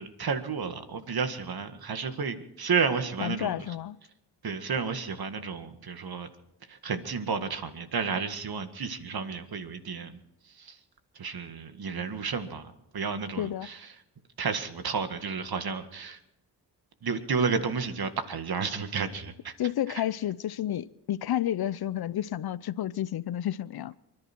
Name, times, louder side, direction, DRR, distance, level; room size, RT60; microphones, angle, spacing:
voice 1, 0.0-3.8 4.4-6.3 6.7-10.2 10.4-10.8 11.2-14.0 14.4-16.2 17.0-19.5 19.9-20.0, right 5 dB, 65° right, 1.9 m, -32 dB
voice 2, 3.2-4.0 13.4-13.7 19.6-23.9, left 12 dB, 65° left, 0.6 m, -31 dB
28.5 x 10.5 x 4.5 m
cardioid pair, 50°, 40 cm